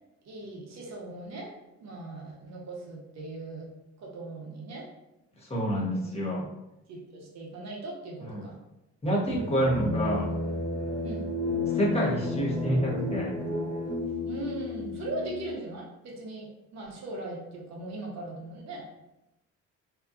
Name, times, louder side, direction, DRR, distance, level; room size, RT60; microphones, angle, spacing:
voice 1, 0.2-1.5 1.8-3.7 4.0-4.9 5.7-6.2 6.9-8.6 9.7-9.9 11.0-11.3 14.3-18.9, right 2 dB, 60° right, -2 dB, 0.7 m, -39 dB
voice 2, 5.4-6.5 8.3-8.4 9.0-10.3 11.6-13.3, equal, 20° left, -5 dB, 0.9 m, -28 dB
sound 1, 9.3-15.5, left 2 dB, 90° right, 0.8 m, -32 dB
2.8 x 2.3 x 2.3 m, 0.91 s
cardioid pair, 90°, 30 cm